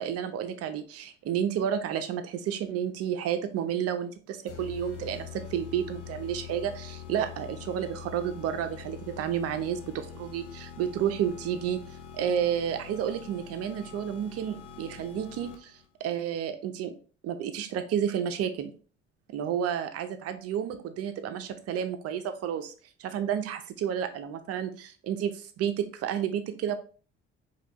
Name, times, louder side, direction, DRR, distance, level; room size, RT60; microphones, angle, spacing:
voice 1, 0.0-11.8 12.1-15.7 16.0-16.9 17.2-18.7 19.3-22.7 23.0-26.7, right 9 dB, 45° right, 8 dB, 0.7 m, -31 dB
sound 1, 4.5-15.8, left 8 dB, 85° left, 0.6 m, -44 dB
5.0 x 2.5 x 3.1 m, 0.39 s
figure-of-eight pair, 55°, 34 cm